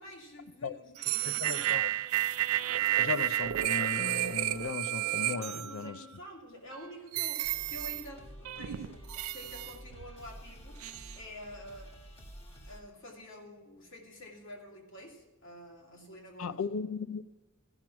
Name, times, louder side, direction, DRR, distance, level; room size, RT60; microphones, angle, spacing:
voice 1, 0.0-2.1 5.4-9.0 9.3-10.8 11.2-12.0 12.6-16.6, equal, 65° left, 2.6 m, -48 dB
sound 1, 1.0-6.2 6.7-6.8 7.1-8.0 8.4-10.1 10.8-11.2, right 13 dB, 85° right, 0.4 m, -32 dB
voice 2, 1.4-1.9 3.0-6.0 16.4-17.2, left 5 dB, 80° left, 0.5 m, -36 dB
sound 2, 7.4-12.8, equal, 30° left, 1.6 m, -50 dB
14.5 x 6.1 x 5.8 m
head